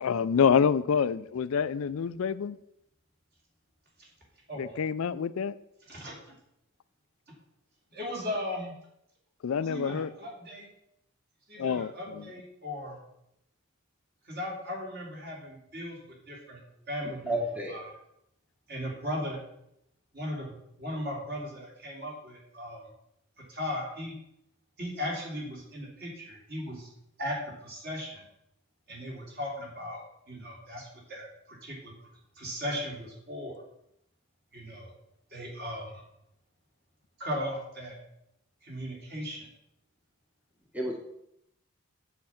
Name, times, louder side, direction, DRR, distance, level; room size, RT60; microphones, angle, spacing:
voice 1, 0.0-2.6 4.6-5.5 9.4-10.1 11.6-12.3, left 6 dB, 70° left, 0.4 m, -27 dB
voice 2, 5.9-6.3 7.9-8.7 9.6-10.7 11.5-13.0 14.2-16.6 16.9-17.4 17.7-18.0 18.7-19.4 20.1-22.9 23.5-24.1 24.8-26.9 27.2-27.4 27.6-28.2 28.9-30.0 30.3-31.9 32.3-33.6 34.5-34.9 35.3-36.0 37.2-38.0 38.6-39.5, left 1 dB, 45° right, 3.2 m, -37 dB
voice 3, 17.3-17.7 40.7-40.9, right 1 dB, 5° right, 1.0 m, -30 dB
7.8 x 7.4 x 5.8 m
head